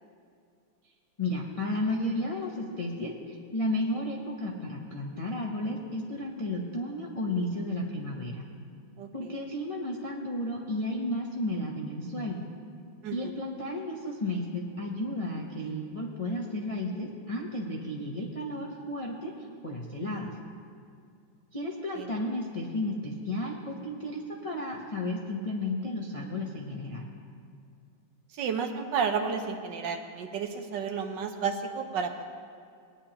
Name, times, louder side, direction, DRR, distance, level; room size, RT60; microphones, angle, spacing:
voice 1, 1.2-8.5 9.1-12.4 13.1-19.3 19.6-20.3 21.5-27.0, left 1 dB, 50° left, -2 dB, 0.4 m, -33 dB
voice 2, 9.0-9.3 13.0-13.4 21.9-22.2 28.3-32.2, right 6 dB, 65° right, 5 dB, 1.3 m, -32 dB
19.5 x 9.8 x 2.9 m, 2.3 s
omnidirectional pair, 2.3 m